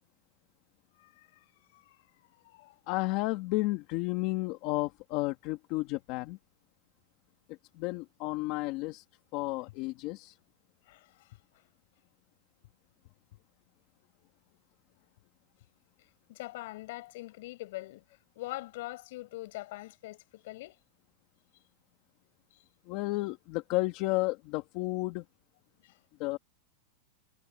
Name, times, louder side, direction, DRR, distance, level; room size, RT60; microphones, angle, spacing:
voice 1, 1.0-2.8 10.9-11.6 13.3-13.4 16.3-20.8 25.8-26.0, left 18 dB, 60° left, 5.7 m, -44 dB
voice 2, 2.9-6.4 7.8-9.0 9.3-10.4 22.9-25.2 26.2-26.4, left 21 dB, 45° left, 1.8 m, -32 dB
supercardioid pair, 150°, 0 cm